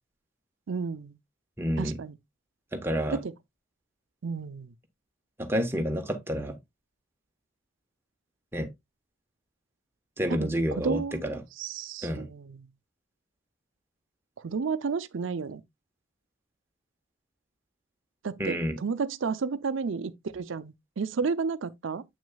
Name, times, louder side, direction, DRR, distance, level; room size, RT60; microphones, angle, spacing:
voice 1, 0.7-1.2 1.8-2.2 3.1-3.3 4.2-4.7 10.3-11.3 11.6-12.7 14.4-15.6 18.2-22.0, right 5 dB, 80° right, 0.5 m, -32 dB
voice 2, 1.6-2.0 2.7-3.2 5.4-6.6 8.5-8.7 10.2-11.4 12.0-12.3 18.4-18.8, equal, 10° right, 1.1 m, -29 dB
8.1 x 6.2 x 2.3 m
head